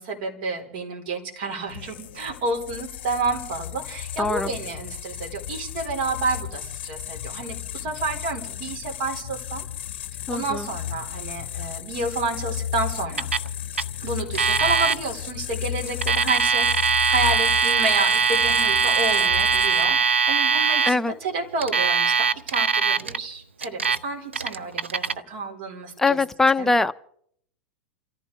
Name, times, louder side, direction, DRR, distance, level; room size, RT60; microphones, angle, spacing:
voice 1, 0.0-9.7 10.3-13.3 14.0-26.2 26.6-26.7, right 3 dB, 55° right, 4.3 m, -30 dB
sound 1, 1.7-20.1, left 10 dB, 65° left, 0.6 m, -34 dB
voice 2, 4.2-4.5 10.3-10.7 20.9-21.1 26.0-26.9, left 3 dB, 5° left, 0.6 m, -22 dB
Alarm, 13.2-13.5 13.7-13.8 14.3-14.9 15.9-20.9 21.6-23.2 23.6-24.0 24.3-25.1, right 5 dB, 90° right, 0.6 m, -21 dB
29.0 x 14.0 x 3.5 m
hypercardioid pair, 95°, 6 cm